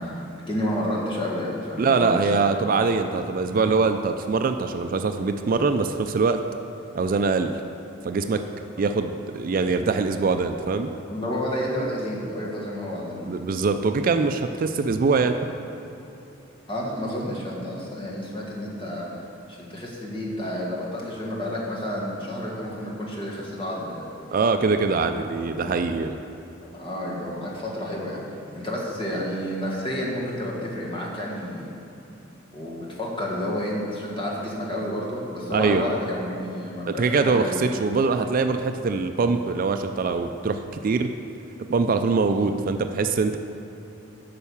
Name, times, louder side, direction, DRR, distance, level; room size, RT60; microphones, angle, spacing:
voice 1, 0.0-2.3 11.1-13.4 16.7-19.1 19.5-24.1 26.6-28.2 28.5-31.7 32.5-37.6, left 1 dB, 25° left, -4 dB, 1.7 m, -30 dB
voice 2, 1.8-6.4 6.9-7.5 8.0-8.4 8.8-10.9 13.3-15.4 24.3-26.2 35.5-35.8 36.9-41.1 41.7-43.4, right 4 dB, 45° right, 7 dB, 0.3 m, -23 dB
8.9 x 5.7 x 7.0 m, 2.9 s
head